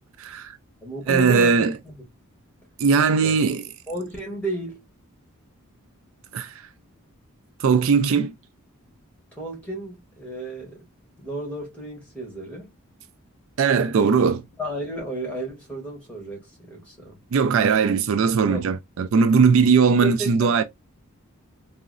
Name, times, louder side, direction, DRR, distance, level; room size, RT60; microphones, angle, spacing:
voice 1, 0.2-0.6 1.1-1.7 2.8-3.6 6.3-6.5 7.6-8.3 13.6-14.4 17.3-20.6, right 5 dB, 60° right, 0.3 m, -19 dB
voice 2, 0.8-2.1 3.2-3.3 3.9-4.8 7.7-8.2 9.3-10.8 11.2-12.7 14.6-17.2 18.4-18.7 20.0-20.6, right 2 dB, 5° left, 1.3 m, -33 dB
3.7 x 2.0 x 2.4 m
head